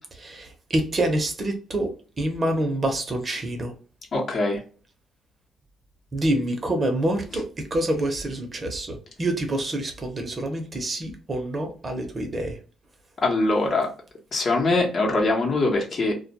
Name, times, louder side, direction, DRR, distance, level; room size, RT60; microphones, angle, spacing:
voice 1, 0.1-1.9 2.2-3.7 6.1-12.6, right 1 dB, 35° right, 4 dB, 0.7 m, -27 dB
voice 2, 4.1-4.6 13.2-13.9 14.3-16.1, left 2 dB, 50° left, 0 dB, 0.8 m, -22 dB
2.2 x 2.1 x 2.8 m, 0.38 s
cardioid pair, 90°, 0 cm